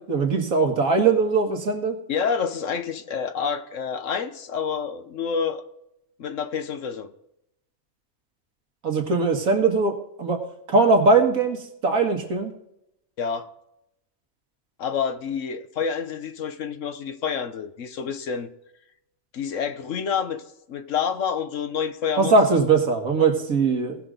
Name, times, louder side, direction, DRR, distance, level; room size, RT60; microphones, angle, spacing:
voice 1, 0.1-2.0 8.8-10.4 10.7-12.5 22.2-24.0, right 4 dB, 85° right, 2.1 m, -20 dB
voice 2, 2.1-5.6 6.2-7.1 13.2-13.5 14.8-18.5 19.3-20.4 20.7-22.6, left 6 dB, 65° left, 1.2 m, -28 dB
18.5 x 6.3 x 3.9 m
omnidirectional pair, 1.4 m